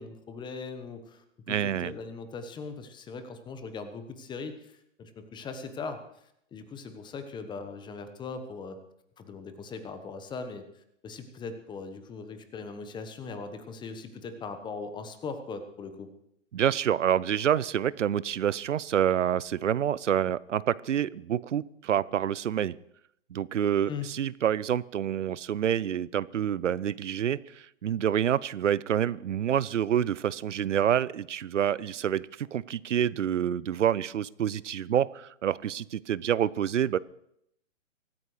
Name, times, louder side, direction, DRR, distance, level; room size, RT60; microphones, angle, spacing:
voice 1, 0.0-6.0 6.5-8.8 9.2-16.1 23.9-24.1, left 4 dB, 10° left, 9 dB, 1.1 m, -40 dB
voice 2, 1.5-1.9 16.5-22.8 23.3-37.0, right 9 dB, 70° right, 21 dB, 0.6 m, -27 dB
24.0 x 13.5 x 3.2 m, 0.76 s
figure-of-eight pair, 125°, 38 cm